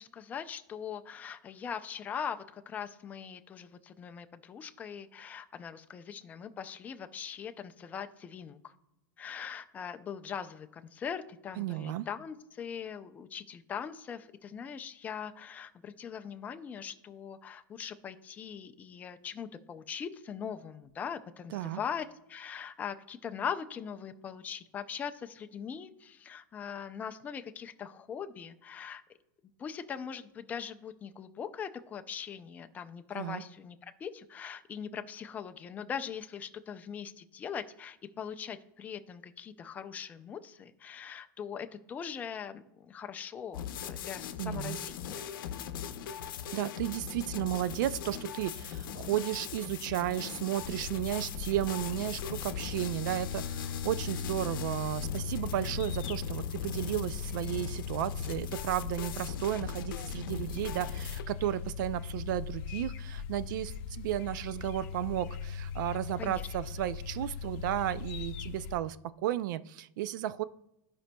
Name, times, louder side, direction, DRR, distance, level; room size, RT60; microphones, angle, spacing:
voice 1, 0.0-8.7 9.2-29.0 29.6-45.2 66.2-66.5, left 7 dB, 15° left, 8 dB, 0.3 m, -41 dB
voice 2, 11.6-12.1 21.5-21.8 33.2-33.4 44.4-44.8 46.5-70.4, right 13 dB, 65° right, 16 dB, 0.4 m, -34 dB
sound 1, 43.5-61.2, left 8 dB, 85° left, 0.6 m, -40 dB
sound 2, 50.6-68.8, left 6 dB, 45° left, 0.7 m, -39 dB
14.0 x 5.2 x 2.2 m, 0.90 s
supercardioid pair, 160°, 11 cm